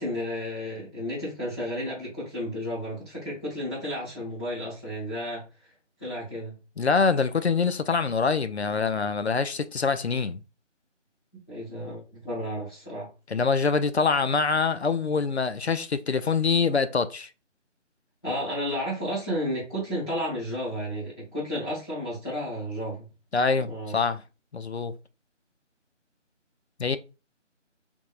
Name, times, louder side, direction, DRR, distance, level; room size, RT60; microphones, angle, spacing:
voice 1, 0.0-5.4 6.0-6.6 11.5-13.1 18.2-23.0 23.6-23.9, equal, 20° left, 1.2 m, -32 dB
voice 2, 6.8-10.4 13.3-17.3 23.3-24.2 24.5-25.0 26.8-27.0, left 5 dB, 60° left, 0.5 m, -25 dB
3.4 x 3.2 x 2.4 m
figure-of-eight pair, 165°, 37 cm